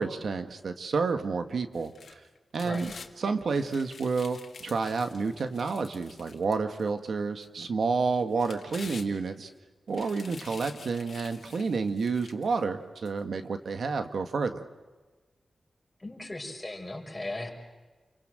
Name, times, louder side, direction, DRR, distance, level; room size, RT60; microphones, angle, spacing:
voice 1, 0.0-2.2 2.5-2.9 3.2-9.5 9.9-14.6, right 4 dB, 80° right, 7 dB, 1.7 m, -30 dB
sound 1, 1.7-3.1 3.5-6.9 7.4-7.5 8.2-9.5 9.9-12.5 13.1-13.2, left 5 dB, 75° left, 2.1 m, -48 dB
voice 2, 16.0-17.5, left 2 dB, 15° left, 1 dB, 5.6 m, -37 dB
29.5 x 23.5 x 7.8 m, 1.3 s
wide cardioid pair, 105°, 0 cm